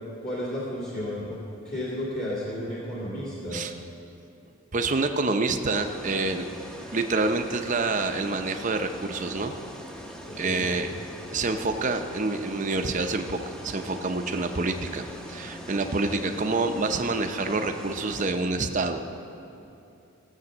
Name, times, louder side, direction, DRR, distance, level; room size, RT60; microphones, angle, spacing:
voice 1, 0.2-1.4 1.6-3.6 10.3-10.6, left 1 dB, 40° left, -9 dB, 2.1 m, -32 dB
voice 2, 4.7-6.5 6.9-9.6 10.4-10.9 11.3-15.0 15.3-19.0, right 3 dB, 35° right, 6 dB, 0.6 m, -27 dB
sound 1, 5.7-18.3, equal, 5° left, 0.7 m, -42 dB
16.5 x 7.5 x 6.2 m, 2.8 s
head